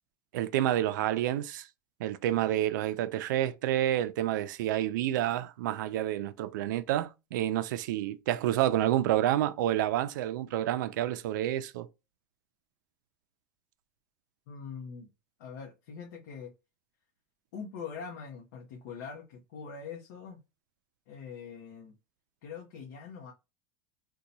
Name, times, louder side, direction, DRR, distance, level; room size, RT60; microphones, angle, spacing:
voice 1, 0.3-1.7 2.0-11.9, right 13 dB, 90° right, 0.4 m, -29 dB
voice 2, 14.5-15.1 15.4-16.5 17.5-20.4 21.1-21.9 22.4-23.3, left 6 dB, 70° left, 0.8 m, -43 dB
2.8 x 2.2 x 3.9 m
supercardioid pair, 160°, 10 cm